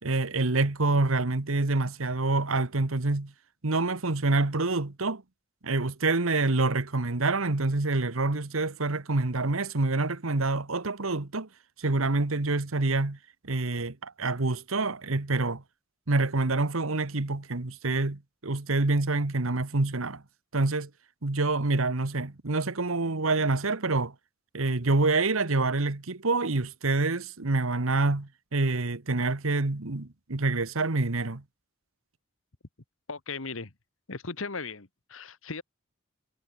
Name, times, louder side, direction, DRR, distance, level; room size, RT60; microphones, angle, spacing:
voice 1, 0.0-3.3 3.6-5.2 5.6-11.5 11.8-13.2 13.4-15.6 16.1-20.2 20.5-20.9 21.2-24.1 24.5-31.4, right 3 dB, 85° right, 1.4 m, -27 dB
voice 2, 33.1-33.7 34.1-35.6, left 4 dB, 75° left, 1.6 m, -37 dB
head